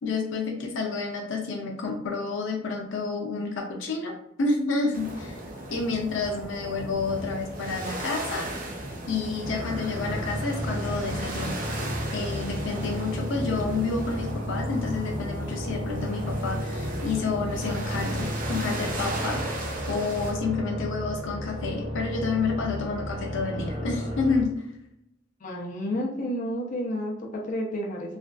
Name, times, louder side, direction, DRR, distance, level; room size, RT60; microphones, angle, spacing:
voice 1, 0.0-5.4 5.7-8.5 9.1-11.6 12.1-19.6 19.9-24.5, left 4 dB, 90° left, 1 dB, 0.5 m, -29 dB
sound 1, 4.9-20.3, right 1 dB, 50° right, 0.7 m, -36 dB
sound 2, 9.4-24.4, equal, 75° right, 0.9 m, -33 dB
voice 2, 25.4-28.2, equal, 45° left, -2 dB, 0.6 m, -31 dB
3.2 x 2.2 x 2.5 m, 0.80 s
head